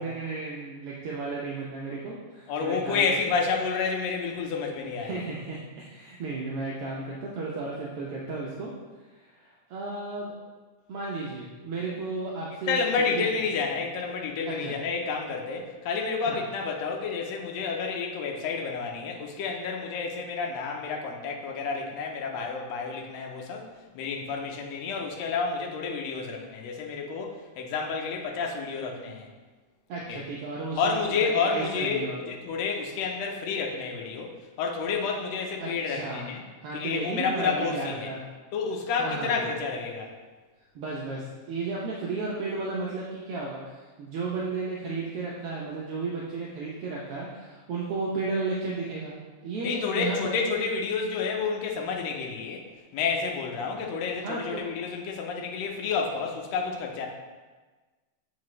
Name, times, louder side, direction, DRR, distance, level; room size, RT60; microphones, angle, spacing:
voice 1, 0.0-3.1 5.0-8.7 9.1-10.3 10.9-13.2 14.4-14.7 16.3-16.4 29.9-32.2 35.6-36.3 36.6-38.3 39.0-39.5 40.7-49.1 49.4-50.3 54.2-54.7, right 3 dB, 75° right, -4 dB, 1.3 m, -34 dB
voice 2, 2.5-5.2 12.7-23.7 23.9-29.3 30.1-30.2 30.8-36.4 36.7-38.1 38.5-40.1 49.6-52.6 52.9-57.1, left 5 dB, 70° left, 0 dB, 1.7 m, -30 dB
8.0 x 4.7 x 3.2 m, 1.3 s
omnidirectional pair, 3.6 m